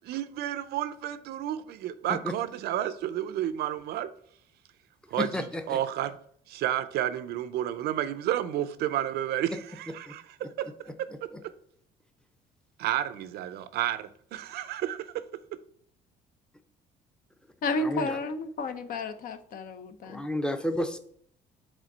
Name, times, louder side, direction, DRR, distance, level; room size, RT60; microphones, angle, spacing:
voice 1, 0.0-4.1 5.1-6.1 6.5-10.7 11.0-11.1 11.4-11.5 12.8-15.2, right 12 dB, 70° right, 0.5 m, -31 dB
voice 2, 5.1-5.8 10.1-10.2 11.3-11.4 17.8-18.2 20.0-21.0, left 1 dB, 5° left, 0.6 m, -31 dB
voice 3, 17.6-20.2, left 2 dB, 55° left, 0.7 m, -32 dB
5.0 x 3.6 x 5.4 m
cardioid pair, 110°, 17 cm